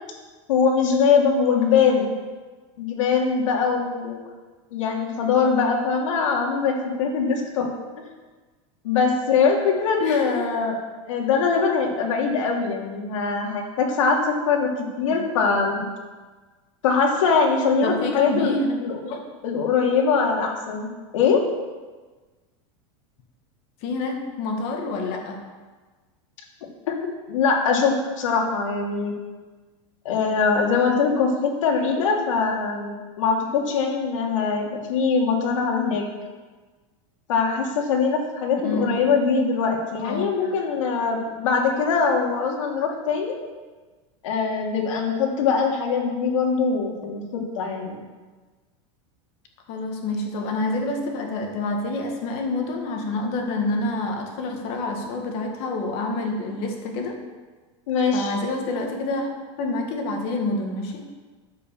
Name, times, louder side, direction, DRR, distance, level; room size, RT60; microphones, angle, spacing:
voice 1, 0.5-2.1 2.8-4.3 4.7-7.7 8.8-10.8 11.1-14.7 15.0-15.8 16.8-18.5 18.8-19.0 19.4-21.4 27.3-29.1 30.0-36.0 37.3-43.4 44.2-48.0 57.9-58.4, left 5 dB, 85° left, 0 dB, 2.8 m, -22 dB
voice 2, 10.0-10.5 15.1-15.2 17.8-18.7 19.0-19.2 23.8-25.4 38.6-39.1 40.0-40.5 49.7-57.2 58.1-59.3 59.6-61.1, left 2 dB, 40° left, 3 dB, 1.7 m, -27 dB
10.5 x 7.5 x 7.1 m, 1.3 s
supercardioid pair, 175°, 16 cm